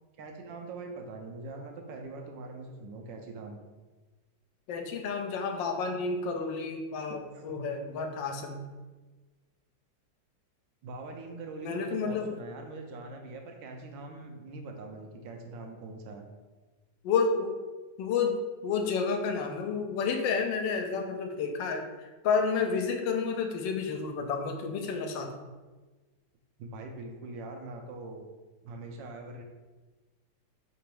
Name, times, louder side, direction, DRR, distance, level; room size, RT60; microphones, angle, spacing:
voice 1, 0.2-3.6 7.0-7.6 10.8-16.3 26.6-28.3 28.6-29.4, right 3 dB, 80° right, 3 dB, 1.3 m, -43 dB
voice 2, 4.7-8.6 11.6-12.3 17.0-17.6 18.0-18.4 18.6-21.9 22.2-25.3, left 5 dB, 80° left, 4 dB, 1.3 m, -30 dB
3.5 x 2.9 x 4.7 m, 1.3 s
omnidirectional pair, 2.0 m